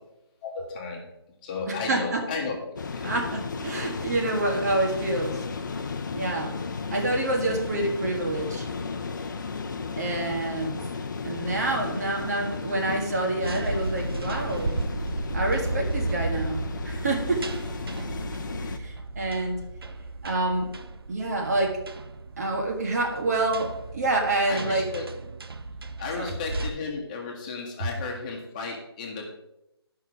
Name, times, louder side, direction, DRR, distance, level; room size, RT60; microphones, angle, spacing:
voice 1, 0.4-1.0 1.4-3.1 24.5-25.1 26.0-29.3, left 4 dB, 20° left, 0 dB, 1.5 m, -34 dB
voice 2, 1.7-2.2 3.0-5.4 6.1-6.6 6.9-8.7 10.0-10.9 11.2-14.7 15.3-17.5 18.6-19.6 20.2-20.7 21.1-21.8 22.4-24.9 26.2-26.3, right 2 dB, 40° right, 2 dB, 1.6 m, -27 dB
sound 1, 2.8-18.8, left 4 dB, 45° left, 0.8 m, -34 dB
sound 2, 13.4-26.7, right 2 dB, 60° right, 0.8 m, -34 dB
11.0 x 5.9 x 4.8 m, 0.86 s
figure-of-eight pair, 165°, 14 cm